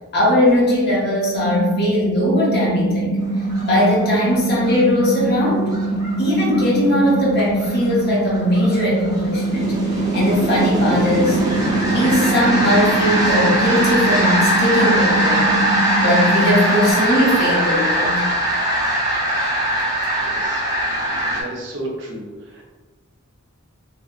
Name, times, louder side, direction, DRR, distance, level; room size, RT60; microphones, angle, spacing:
voice 1, 0.1-3.2 3.7-5.7 6.2-9.8 10.1-11.4 11.9-15.6 16.0-18.3, left 1 dB, 50° left, -5 dB, 0.8 m, -19 dB
sound 1, 1.4-16.9, right 2 dB, 65° left, 0.4 m, -23 dB
sound 2, 3.4-21.4, right 1 dB, 15° right, 0.4 m, -21 dB
voice 2, 20.2-22.6, right 1 dB, 60° right, -3 dB, 0.6 m, -34 dB
2.8 x 2.6 x 2.3 m, 1.4 s
head